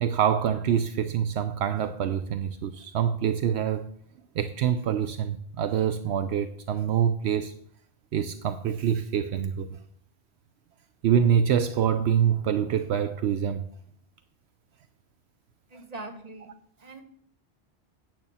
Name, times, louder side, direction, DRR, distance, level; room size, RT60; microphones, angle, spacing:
voice 1, 0.0-3.9 4.4-7.5 8.1-9.8 11.0-13.6, right 8 dB, 75° right, 0.9 m, -25 dB
voice 2, 15.7-16.5 16.8-17.0, right 2 dB, 35° right, 1.5 m, -41 dB
9.3 x 7.8 x 5.6 m
omnidirectional pair, 1.1 m